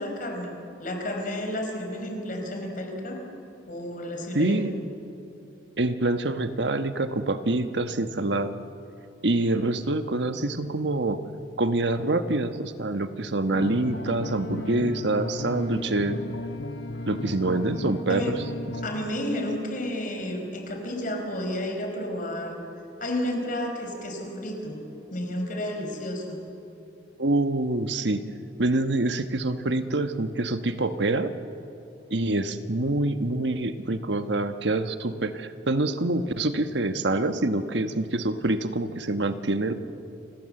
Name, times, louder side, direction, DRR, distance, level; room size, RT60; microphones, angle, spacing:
voice 1, 0.0-3.2 3.7-4.6 18.1-18.3 18.8-22.6 23.0-24.8 25.1-26.4, left 1 dB, 45° left, 3 dB, 5.0 m, -31 dB
voice 2, 4.3-4.7 5.8-8.5 9.2-11.2 11.6-16.2 17.0-18.4 27.2-28.2 28.6-31.3 32.1-39.7, right 2 dB, 70° right, 9 dB, 1.3 m, -26 dB
sound 1, 13.5-18.9, left 2 dB, 65° left, 1.2 m, -35 dB
30.0 x 25.5 x 7.8 m, 2.8 s
head